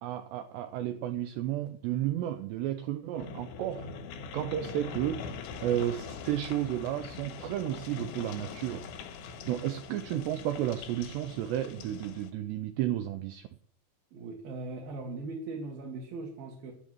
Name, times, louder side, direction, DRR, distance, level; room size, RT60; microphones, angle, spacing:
voice 1, 0.0-3.9 4.3-5.3 5.6-8.9 9.5-13.5, right 12 dB, 80° right, 8 dB, 2.6 m, -32 dB
sound 1, 3.2-12.3, left 5 dB, 80° left, 3.8 m, -43 dB
voice 2, 14.1-16.7, right 3 dB, 60° right, -2 dB, 3.0 m, -39 dB
12.5 x 5.9 x 9.0 m, 0.62 s
omnidirectional pair, 5.5 m